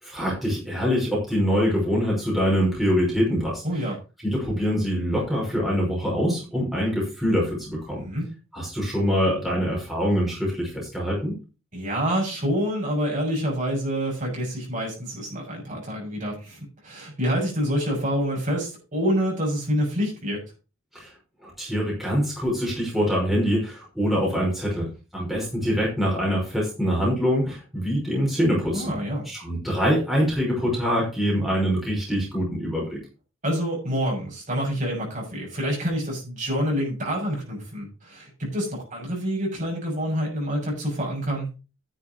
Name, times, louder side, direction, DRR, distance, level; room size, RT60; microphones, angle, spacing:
voice 1, 0.0-3.6 4.2-8.0 8.5-11.3 20.9-21.1 21.4-24.9 25.1-28.9 29.3-33.0, equal, ahead, -5 dB, 5.5 m, -24 dB
voice 2, 3.6-4.0 7.9-8.3 11.7-20.4 28.7-29.3 33.4-41.5, equal, 40° right, -2 dB, 6.6 m, -27 dB
10.5 x 7.5 x 5.1 m, 0.31 s
head